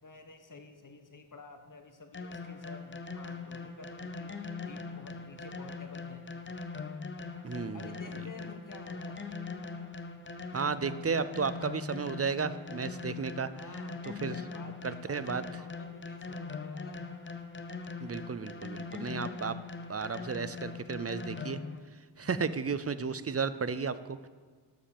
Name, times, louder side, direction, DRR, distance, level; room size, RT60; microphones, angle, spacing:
voice 1, 0.0-6.3 7.7-9.3 13.5-17.1 22.2-22.6, left 3 dB, 40° left, 6 dB, 1.4 m, -51 dB
sound 1, 2.1-21.8, left 4 dB, 25° left, 0.7 m, -41 dB
voice 2, 7.4-7.9 10.5-13.5 14.0-14.4 14.8-15.4 18.0-19.6 19.9-21.6 22.2-24.2, right 5 dB, 30° right, 14 dB, 0.5 m, -33 dB
12.5 x 7.3 x 7.1 m, 1.5 s
wide cardioid pair, 115°, 46 cm